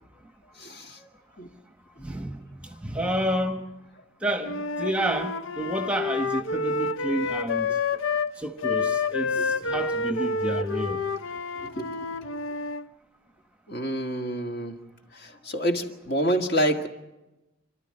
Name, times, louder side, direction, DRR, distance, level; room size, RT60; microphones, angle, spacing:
voice 1, 0.6-1.1 1.4-1.5 9.4-9.8 11.6-12.1 13.7-14.7 15.1-16.9, right 1 dB, 50° left, 1.9 m, -28 dB
voice 2, 2.0-3.6 4.2-7.7 8.4-11.0, right 1 dB, 5° right, 1.0 m, -30 dB
Wind instrument woodwind instrument, 4.4-8.3 8.6-12.9, left 4 dB, 65° left, 0.7 m, -29 dB
28.5 x 12.5 x 9.8 m
head